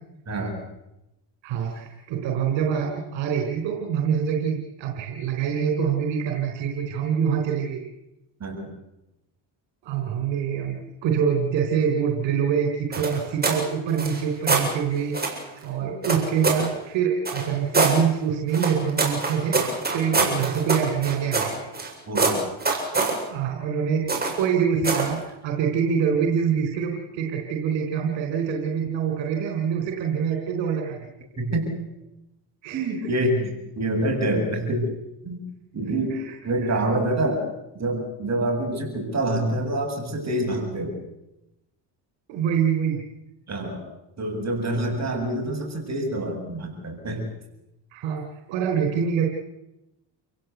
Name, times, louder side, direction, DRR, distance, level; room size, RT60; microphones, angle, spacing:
voice 1, 0.3-0.6 8.4-8.7 15.8-15.9 20.1-20.2 22.1-22.4 31.4-31.7 32.7-34.9 35.2-35.4 35.7-36.2 36.4-37.4 37.7-40.9 43.5-43.8 44.2-47.2, right 1 dB, 35° right, 2 dB, 8.0 m, -26 dB
voice 2, 1.4-7.8 9.8-21.6 23.3-24.1 24.4-31.1 32.6-33.1 35.8-36.3 36.6-36.8 42.3-43.0 47.9-49.2, right 7 dB, 75° right, 2 dB, 4.1 m, -25 dB
sound 1, 12.9-13.6 13.9-14.7 15.1-15.4 16.0-16.7 17.2-18.0 18.5-21.9 22.1-23.2 24.1-24.4 24.8-25.1, right 3 dB, 20° right, 7.6 m, -24 dB
29.5 x 16.5 x 8.2 m, 0.90 s
supercardioid pair, 85°, 44 cm